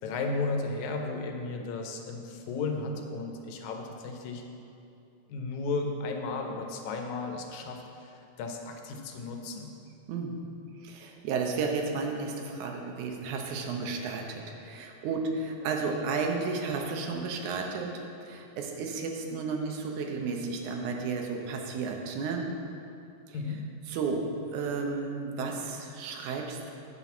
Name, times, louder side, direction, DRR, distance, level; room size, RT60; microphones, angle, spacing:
voice 1, 0.0-4.4 5.3-9.7 23.3-23.6, left 3 dB, 80° left, 3 dB, 2.1 m, -34 dB
voice 2, 10.8-17.9 18.2-22.5 23.3-23.6 23.9-24.2 24.5-26.7, right 4 dB, 80° right, 2 dB, 2.2 m, -33 dB
9.1 x 4.3 x 7.0 m, 2.7 s
omnidirectional pair, 3.4 m